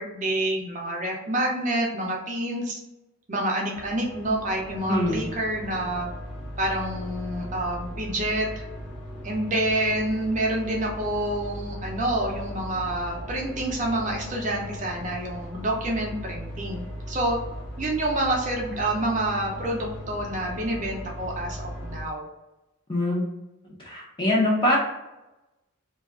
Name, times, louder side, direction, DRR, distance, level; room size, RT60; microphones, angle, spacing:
voice 1, 0.0-2.8 3.3-6.1 6.6-8.5 9.2-16.8 17.1-17.4 17.8-22.2, right 1 dB, 35° right, -1 dB, 0.5 m, -28 dB
sound 1, 3.7-22.0, equal, 55° left, 0.9 m, -38 dB
voice 2, 4.9-5.2 22.9-23.3 23.8-24.8, left 1 dB, 20° left, -3 dB, 0.7 m, -23 dB
2.7 x 2.3 x 3.5 m, 0.99 s
head